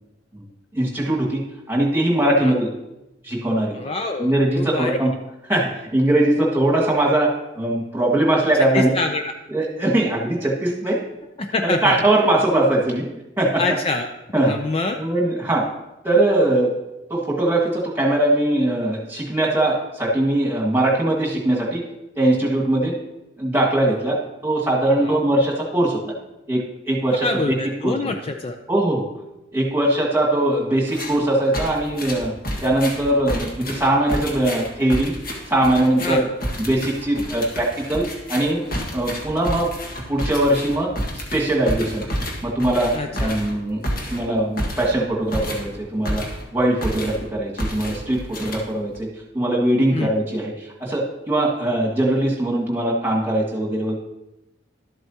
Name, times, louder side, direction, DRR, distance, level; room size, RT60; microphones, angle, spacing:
voice 1, 0.7-1.4 1.7-2.7 3.2-3.7 4.2-5.1 5.4-7.3 7.6-8.9 9.5-11.0 11.6-13.1 13.4-13.6 14.3-14.5 15.0-15.6 16.0-16.7 17.1-21.8 22.2-22.9 23.4-24.2 24.4-26.0 26.5-27.6 27.8-28.0 28.7-29.0 29.5-32.3 32.6-35.1 35.5-36.3 36.6-38.0 38.3-38.6 38.9-39.7 40.1-42.0 42.4-42.9 43.2-43.8 44.1-46.2 46.5-49.1 49.3-51.0 51.3-54.0, right 1 dB, 10° right, -3 dB, 1.8 m, -21 dB
voice 2, 3.7-5.0 8.7-9.2 11.4-12.0 13.6-14.1 14.5-15.0 25.0-25.2 27.1-28.6 36.0-36.3 42.9-43.3 49.9-50.1, left 3 dB, 30° left, 5 dB, 0.4 m, -25 dB
sound 1, 30.9-31.2 31.5-46.5 46.8-47.3 47.6-49.0, equal, 50° left, 1.6 m, -30 dB
12.0 x 7.8 x 2.8 m, 0.95 s
head